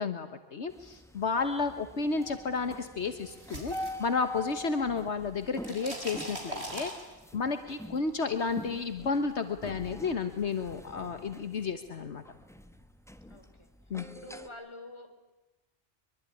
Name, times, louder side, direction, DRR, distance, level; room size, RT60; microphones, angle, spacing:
voice 1, 0.0-6.9 7.3-12.2 13.9-14.0, left 4 dB, 70° left, 9 dB, 1.6 m, -32 dB
sound 1, 0.7-14.5, left 1 dB, ahead, 1.3 m, -45 dB
sound 2, 3.0-4.7 5.0-7.5, right 1 dB, 60° right, 6.1 m, -41 dB
voice 2, 13.2-13.7 14.0-15.1, left 1 dB, 25° left, 6 dB, 4.0 m, -47 dB
24.0 x 23.5 x 9.9 m, 1.0 s
omnidirectional pair, 1.2 m